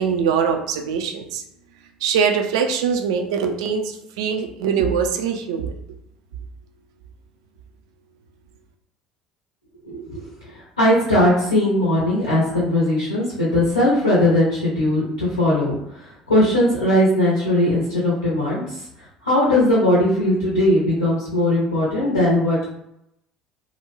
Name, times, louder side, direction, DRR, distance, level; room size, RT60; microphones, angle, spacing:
voice 1, 0.0-1.4 2.0-5.7, right 6 dB, 65° right, 5 dB, 0.3 m, -22 dB
voice 2, 9.8-10.2 10.5-18.8 19.2-22.6, left 1 dB, 85° left, -7 dB, 0.6 m, -19 dB
2.4 x 2.1 x 3.0 m, 0.79 s
figure-of-eight pair, 60°, 3 cm